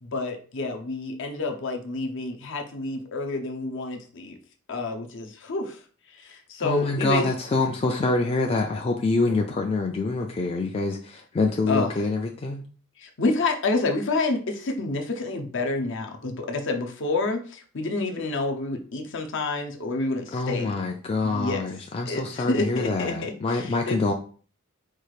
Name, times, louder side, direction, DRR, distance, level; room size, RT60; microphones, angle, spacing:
voice 1, 0.0-4.4 4.7-5.8 6.2-7.3 9.3-9.4 11.7-11.9 13.0-20.7 21.2-21.6 22.0-24.0, left 3 dB, 60° left, 4 dB, 0.7 m, -28 dB
voice 2, 6.6-12.6 20.3-24.1, left 3 dB, 25° left, 2 dB, 0.3 m, -26 dB
4.4 x 2.4 x 3.2 m, 0.41 s
head